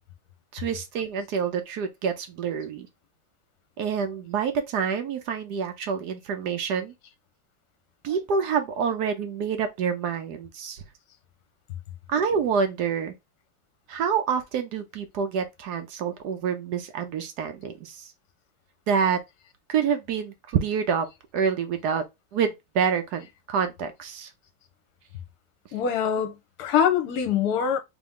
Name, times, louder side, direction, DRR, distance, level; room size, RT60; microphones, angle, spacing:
voice 1, 0.5-2.9 3.8-6.9 8.0-10.8 12.1-13.1 13.9-18.1 18.9-19.2 19.7-21.1 21.3-22.0 22.3-24.3, right 6 dB, 65° right, 1.1 m, -27 dB
voice 2, 25.7-27.8, left 8 dB, 60° left, 1.3 m, -24 dB
3.7 x 3.0 x 3.5 m
omnidirectional pair, 2.2 m